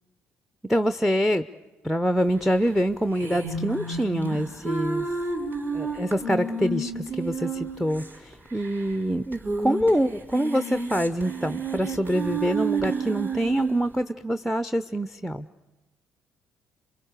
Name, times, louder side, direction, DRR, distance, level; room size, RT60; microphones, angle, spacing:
voice 1, 0.7-1.4 1.8-5.1 5.7-15.5, equal, ahead, 12 dB, 0.8 m, -25 dB
sound 1, 3.2-8.1 8.3-8.4 8.6-8.7 9.3-9.9 10.2-13.9, right 3 dB, 30° right, 5.2 m, -30 dB
27.5 x 23.0 x 6.7 m, 1.1 s
hypercardioid pair, 50°, 6 cm